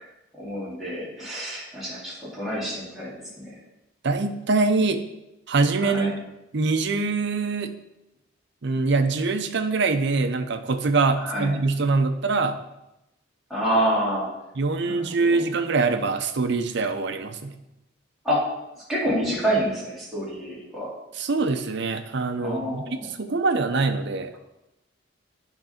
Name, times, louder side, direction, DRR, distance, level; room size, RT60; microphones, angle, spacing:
voice 1, 0.4-3.1 3.4-3.5 5.8-6.1 11.2-11.5 13.5-14.3 14.8-15.0 15.3-15.4 18.2-18.4 18.9-20.9 22.4-23.1, equal, ahead, -8 dB, 2.8 m, -27 dB
voice 2, 4.0-5.0 5.5-6.1 6.5-7.7 8.6-12.6 14.6-17.6 21.2-24.3, right 3 dB, 55° right, 9 dB, 0.6 m, -24 dB
9.1 x 3.8 x 5.8 m, 0.91 s
head